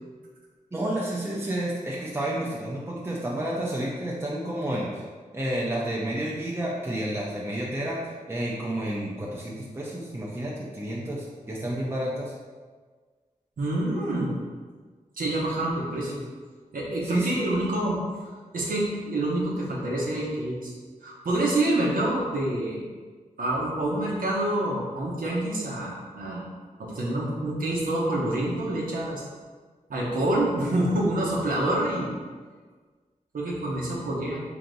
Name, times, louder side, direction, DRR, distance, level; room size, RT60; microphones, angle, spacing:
voice 1, 0.7-5.0 5.3-12.3 17.0-17.4, right 1 dB, 15° right, -4 dB, 0.6 m, -30 dB
voice 2, 13.6-14.3 15.2-16.2 16.7-18.3 18.5-20.7 21.0-22.9 23.4-26.5 26.8-29.2 29.9-32.1 33.3-34.4, right 1 dB, 85° right, -5 dB, 0.9 m, -27 dB
3.4 x 2.8 x 4.0 m, 1.5 s
wide cardioid pair, 70°, 14 cm